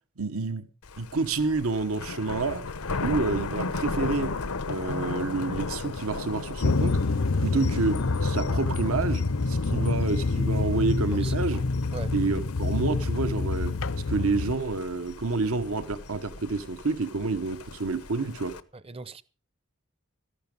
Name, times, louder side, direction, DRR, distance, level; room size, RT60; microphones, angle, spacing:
voice 1, 0.2-0.7 1.0-2.6 3.0-4.3 4.7-7.0 7.4-11.6 12.1-13.7 14.1-18.5, right 3 dB, 75° right, 1.2 m, -29 dB
Thunder, 0.8-18.6, left 3 dB, 85° left, 0.9 m, -36 dB
sound 1, 6.6-14.5, left 3 dB, 60° left, 0.6 m, -27 dB
voice 2, 11.2-11.6 11.9-12.1 18.7-19.2, right 3 dB, 25° right, 0.7 m, -40 dB
14.0 x 11.5 x 5.3 m
head